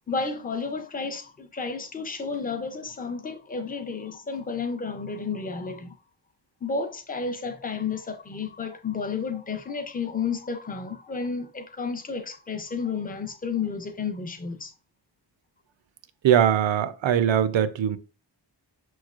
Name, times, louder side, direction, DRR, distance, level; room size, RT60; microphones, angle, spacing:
voice 1, 0.1-5.9 6.6-14.7, left 5 dB, 20° left, 0.5 m, -32 dB
voice 2, 16.2-18.0, right 9 dB, 90° right, 0.5 m, -21 dB
6.3 x 3.1 x 2.4 m
wide cardioid pair, 170°, 43 cm